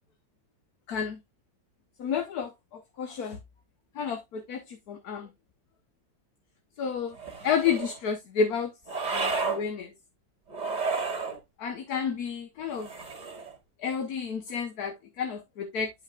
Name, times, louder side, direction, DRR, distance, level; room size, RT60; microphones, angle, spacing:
voice 1, 0.9-1.2 2.0-3.4 3.9-5.3 6.8-7.2 7.4-8.7 9.1-9.9 11.6-12.9 13.8-15.9, left 6 dB, 60° left, 1.3 m, -31 dB
sound 1, 7.1-8.0 8.9-9.6 10.5-11.4 12.7-13.5, right 4 dB, 25° right, 1.3 m, -32 dB
10.0 x 5.7 x 2.3 m
omnidirectional pair, 2.0 m